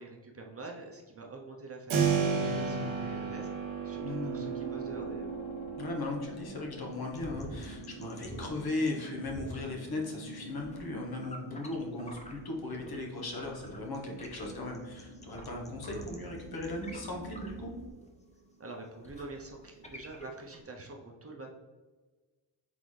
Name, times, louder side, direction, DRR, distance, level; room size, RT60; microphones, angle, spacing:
voice 1, 0.0-5.3 18.6-21.5, right 2 dB, 30° right, 1 dB, 0.6 m, -46 dB
Keyboard (musical), 1.9-12.6, right 6 dB, 80° right, 0.8 m, -36 dB
voice 2, 2.4-3.0 4.0-4.5 5.8-17.7, left 2 dB, 50° left, 0 dB, 1.1 m, -37 dB
sound 1, 4.0-17.9, right 1 dB, 80° left, 1.0 m, -48 dB
sound 2, 6.9-13.1 13.3-20.6, equal, 15° left, 0.6 m, -47 dB
3.9 x 3.9 x 3.2 m, 1.3 s
cardioid pair, 105°, 47 cm